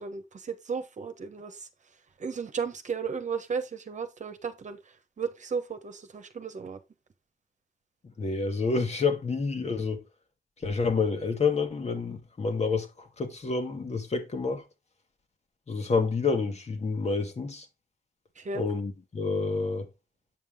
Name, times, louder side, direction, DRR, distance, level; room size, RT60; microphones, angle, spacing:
voice 1, 0.0-1.7 2.2-6.8 18.4-18.6, right 5 dB, 50° right, 1.2 m, -35 dB
voice 2, 8.2-10.0 10.6-14.6 15.7-17.7 18.5-19.9, left 4 dB, 45° left, 1.8 m, -28 dB
8.5 x 5.4 x 3.7 m
cardioid pair, 70°, 16 cm